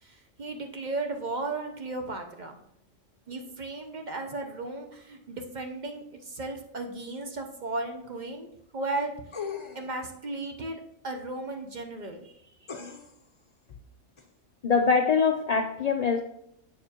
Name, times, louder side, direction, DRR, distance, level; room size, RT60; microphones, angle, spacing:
voice 1, 0.0-2.6 3.3-9.1 9.7-12.4, right 2 dB, 45° right, 4 dB, 0.8 m, -35 dB
sound 1, 9.3-10.0 12.7-13.3 14.2-14.3, left 6 dB, 30° left, 0.6 m, -38 dB
voice 2, 14.6-16.2, left 5 dB, 75° left, 5 dB, 0.3 m, -23 dB
7.4 x 6.7 x 2.9 m, 0.74 s
omnidirectional pair, 1.3 m